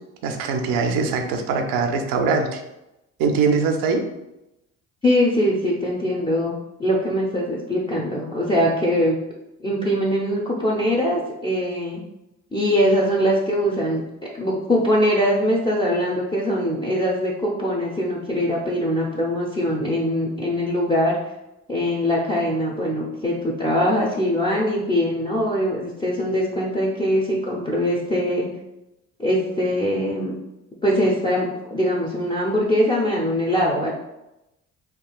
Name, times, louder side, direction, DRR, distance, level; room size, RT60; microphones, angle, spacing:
voice 1, 0.2-2.6 3.2-4.0, right 4 dB, 75° right, 5 dB, 0.6 m, -22 dB
voice 2, 5.0-6.5 6.8-9.2 9.6-12.0 12.5-14.0 14.4-21.2 21.7-28.5 29.2-30.3 30.8-33.9, equal, 15° left, -5 dB, 0.6 m, -22 dB
3.7 x 2.3 x 2.3 m, 0.91 s
supercardioid pair, 65°, 35 cm